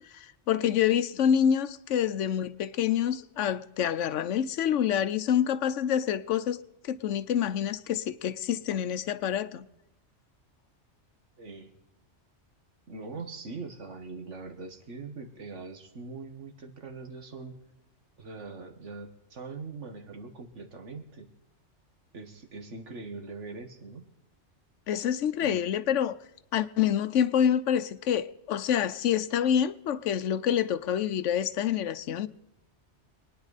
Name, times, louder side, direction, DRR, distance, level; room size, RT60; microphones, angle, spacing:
voice 1, 0.1-6.6 6.8-9.7 24.9-26.2 26.5-32.3, left 9 dB, 85° left, 1.0 m, -27 dB
voice 2, 11.4-11.7 12.9-17.6 18.2-21.3 22.1-24.0 25.4-25.6, right 4 dB, 80° right, 1.9 m, -42 dB
25.0 x 10.0 x 4.1 m
omnidirectional pair, 1.2 m